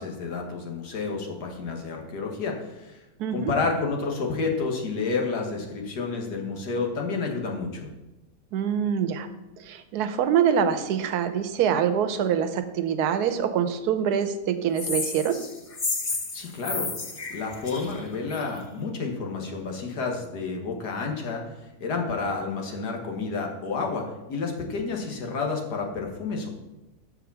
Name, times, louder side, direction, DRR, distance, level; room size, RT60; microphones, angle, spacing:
voice 1, 0.0-3.0 3.3-7.9 16.3-16.9 17.3-21.4 21.8-26.5, left 4 dB, 85° left, 1 dB, 1.9 m, -30 dB
voice 2, 3.2-3.5 8.5-9.3 9.6-15.4, right 8 dB, 80° right, 10 dB, 1.2 m, -25 dB
sound 1, 14.8-18.6, left 3 dB, 35° left, 0.6 m, -32 dB
6.5 x 5.0 x 6.9 m, 1.0 s
omnidirectional pair, 1.7 m